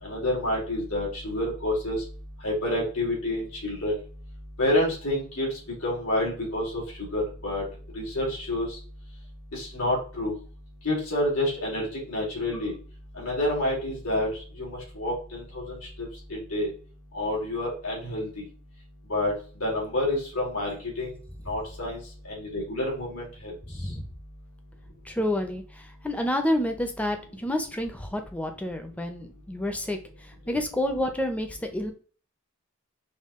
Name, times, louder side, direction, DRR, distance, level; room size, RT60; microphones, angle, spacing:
voice 1, 0.0-2.0 2.4-3.9 4.6-5.5 5.8-6.8 7.1-7.6 7.9-8.7 9.5-10.3 10.8-12.7 13.2-14.3 14.6-16.7 17.1-18.4 19.1-19.3 19.6-21.1 21.5-22.0 22.2-23.5, left 1 dB, 85° left, -4 dB, 2.4 m, -28 dB
voice 2, 23.7-24.1 25.1-30.0 30.5-31.9, left 1 dB, 5° left, 5 dB, 0.6 m, -29 dB
5.5 x 2.3 x 3.6 m, 0.40 s
head